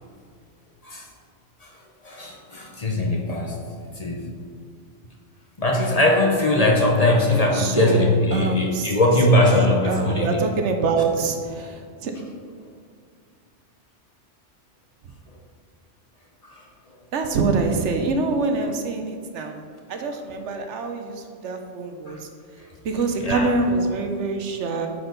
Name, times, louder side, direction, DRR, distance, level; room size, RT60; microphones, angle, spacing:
voice 1, 2.0-3.6 3.9-4.3 5.6-10.4 16.4-16.6 22.1-22.2 23.2-23.5, left 1 dB, 35° left, 0 dB, 0.8 m, -20 dB
voice 2, 7.5-8.9 9.8-12.1 17.1-19.6 19.9-22.2 22.8-24.9, right 3 dB, 75° right, 5 dB, 1.0 m, -25 dB
9.0 x 4.4 x 3.9 m, 2.1 s
omnidirectional pair, 1.2 m